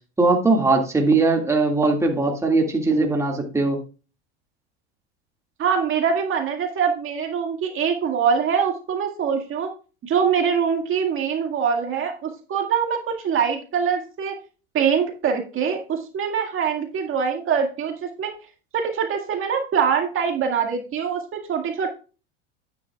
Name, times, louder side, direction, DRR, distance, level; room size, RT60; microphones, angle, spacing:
voice 1, 0.2-3.8, right 3 dB, 10° right, 0 dB, 2.0 m, -20 dB
voice 2, 5.6-9.7 10.0-14.4 14.7-18.3 18.7-21.9, right 7 dB, 40° right, 3 dB, 2.0 m, -23 dB
11.0 x 9.1 x 2.3 m, 0.35 s
supercardioid pair, 105°, 33 cm